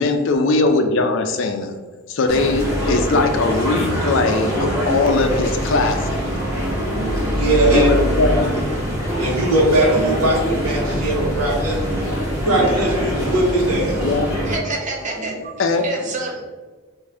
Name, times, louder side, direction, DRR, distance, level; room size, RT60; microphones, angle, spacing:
voice 1, 0.0-1.7 2.1-6.2 7.7-8.6 14.0-14.3 15.6-15.9, left 3 dB, 55° left, 5 dB, 0.4 m, -20 dB
sound 1, 2.3-14.6, equal, 15° right, 1.4 m, -23 dB
voice 2, 7.3-7.9 9.2-12.0 12.4-14.1, right 1 dB, 80° right, -4 dB, 1.2 m, -19 dB
voice 3, 14.4-15.5 15.8-16.5, right 3 dB, 35° right, 1 dB, 0.5 m, -27 dB
3.6 x 2.6 x 3.3 m, 1.4 s
head